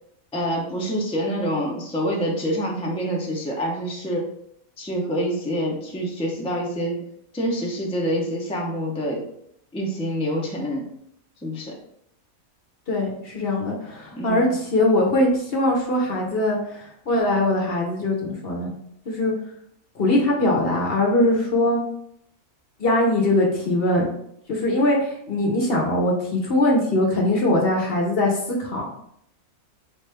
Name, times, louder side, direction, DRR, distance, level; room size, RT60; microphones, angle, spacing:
voice 1, 0.3-4.3 4.8-7.1 7.3-9.2 9.7-10.9 11.4-11.8 14.1-14.5, equal, 5° left, -2 dB, 0.4 m, -26 dB
voice 2, 12.9-18.7 19.1-19.3 20.0-21.8 22.8-24.1 24.5-28.9, left 1 dB, 50° left, -1 dB, 0.9 m, -21 dB
3.9 x 3.0 x 3.3 m, 0.72 s
omnidirectional pair, 1.5 m